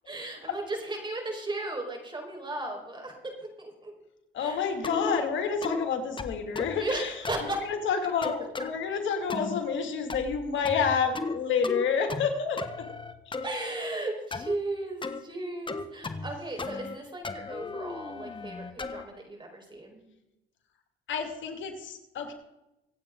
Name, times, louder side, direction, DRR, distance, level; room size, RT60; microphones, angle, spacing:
voice 1, 0.0-3.9 4.4-4.6 6.7-7.7 8.6-8.7 13.4-20.0, right 2 dB, 25° right, 2 dB, 4.9 m, -36 dB
voice 2, 4.3-7.1 7.7-12.9 13.2-13.3 21.1-22.3, left 6 dB, 75° left, 4 dB, 2.5 m, -29 dB
sound 1, 4.8-5.2 5.6-5.9 6.2-6.8 7.2-7.5 8.2-8.7 9.3-9.6 10.1-10.4 10.6-11.4 11.6-12.3 12.6-13.5 14.3-14.5 15.0-15.2 15.7-16.3 16.6-17.0 17.2-19.0, left 3 dB, 25° left, 1.2 m, -35 dB
25.0 x 8.8 x 3.9 m, 0.92 s
cardioid pair, 90°, 20 cm